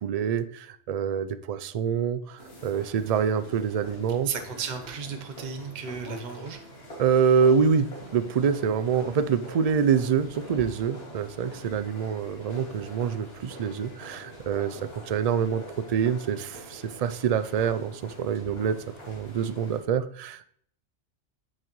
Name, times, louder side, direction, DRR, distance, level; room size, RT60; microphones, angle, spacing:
voice 1, 0.0-4.3 7.0-14.8 15.1-18.8 19.1-20.5, right 7 dB, 60° right, 13 dB, 0.4 m, -26 dB
sound 1, 2.4-19.8, equal, 60° left, 2.5 m, -44 dB
voice 2, 4.2-6.6, right 6 dB, 45° right, 5 dB, 0.9 m, -34 dB
8.7 x 6.5 x 3.0 m, 0.63 s
omnidirectional pair, 1.2 m